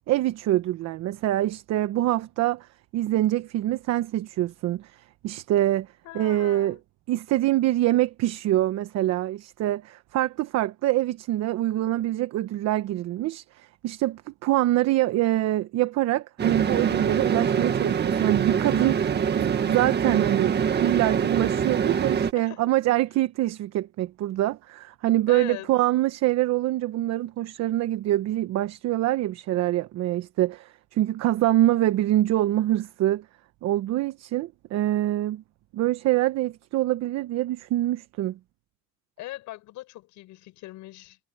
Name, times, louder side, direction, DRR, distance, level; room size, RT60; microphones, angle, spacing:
voice 1, 0.1-5.9 6.1-6.8 7.1-33.2 33.6-35.4 35.7-38.4, right 15 dB, 55° right, 1.1 m, -25 dB
voice 2, 6.0-6.8 22.3-22.6 25.3-25.7 39.2-41.2, left 17 dB, 65° left, 6.2 m, -40 dB
sound 1, 16.4-22.3, right 7 dB, 35° right, 1.9 m, -24 dB
cardioid pair, 120°, 31 cm